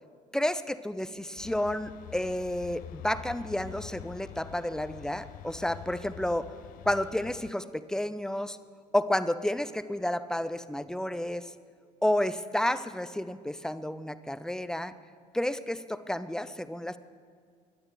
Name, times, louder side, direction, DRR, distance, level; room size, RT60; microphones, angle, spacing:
voice 1, 0.3-6.5 6.9-8.6 8.9-11.5 12.0-14.9 15.3-17.0, left 1 dB, 5° left, 13 dB, 0.7 m, -31 dB
sound 1, 1.4-7.5, left 13 dB, 45° left, 0.4 m, -46 dB
20.0 x 11.5 x 5.3 m, 2.2 s
figure-of-eight pair, 50°, 20 cm